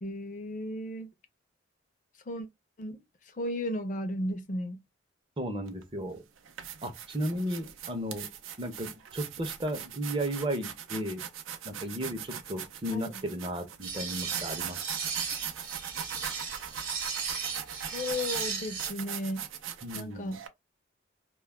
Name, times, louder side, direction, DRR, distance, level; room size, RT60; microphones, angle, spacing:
voice 1, 0.0-1.1 2.3-2.5 2.8-3.0 3.4-4.8 12.9-13.2 17.9-19.4 19.9-20.4, left 1 dB, 40° left, 0.4 m, -34 dB
voice 2, 5.4-6.2 6.8-8.3 8.6-11.2 11.6-14.8 19.8-20.4, equal, 25° right, 0.5 m, -34 dB
sound 1, 5.7-5.8 6.4-20.5, right 9 dB, 85° right, 0.5 m, -40 dB
sound 2, 13.8-18.9, right 6 dB, 45° right, 1.0 m, -36 dB
2.2 x 2.1 x 3.2 m
head